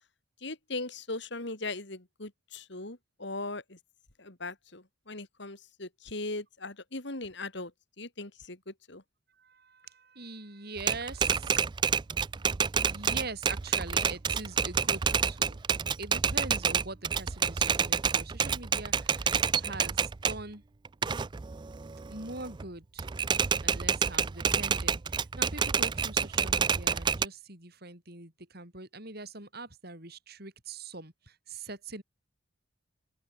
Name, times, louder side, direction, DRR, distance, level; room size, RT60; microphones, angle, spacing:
voice 1, 0.4-3.8 4.2-7.7 8.0-9.0, left 2 dB, 60° left, 3.0 m, -39 dB
voice 2, 9.3-11.6 12.8-15.6 16.0-20.6 22.1-23.1 23.6-32.0, right 3 dB, 50° right, 6.7 m, -43 dB
Typewriter, 10.8-20.4 20.8-22.6 23.0-27.2, right 6 dB, 25° right, 0.3 m, -28 dB
open air
head